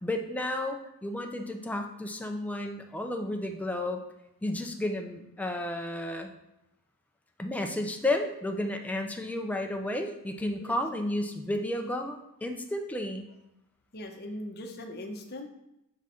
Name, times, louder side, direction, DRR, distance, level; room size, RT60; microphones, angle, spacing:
voice 1, 0.0-4.0 4.4-6.3 7.4-13.3, left 1 dB, 5° left, 4 dB, 0.5 m, -32 dB
voice 2, 13.9-15.5, left 1 dB, 45° left, 3 dB, 0.8 m, -40 dB
6.2 x 3.8 x 4.3 m, 0.85 s
head